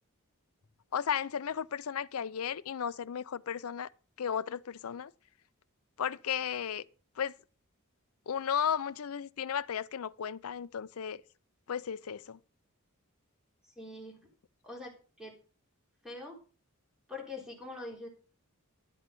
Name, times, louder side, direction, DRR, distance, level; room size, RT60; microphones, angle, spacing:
voice 1, 0.9-3.9 4.2-5.1 6.0-6.8 7.2-7.3 8.3-11.2 11.7-12.4, left 8 dB, 85° left, 0.5 m, -34 dB
voice 2, 13.8-14.3 14.6-15.3 16.0-16.4 17.1-18.1, left 2 dB, 5° right, 3.4 m, -44 dB
11.5 x 7.5 x 5.3 m
head